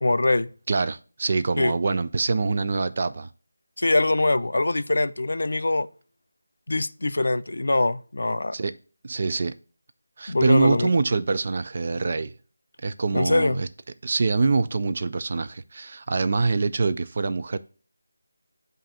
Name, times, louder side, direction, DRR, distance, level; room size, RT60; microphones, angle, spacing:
voice 1, 0.0-0.5 1.6-1.7 3.8-5.9 6.7-8.5 10.3-10.9 13.1-13.6, left 2 dB, 70° left, 0.4 m, -23 dB
voice 2, 0.7-3.3 8.5-8.7 9.0-9.5 10.2-12.3 12.8-13.7 14.0-17.6, right 4 dB, 35° right, 0.3 m, -24 dB
7.4 x 2.6 x 5.6 m
figure-of-eight pair, 175°, 0 cm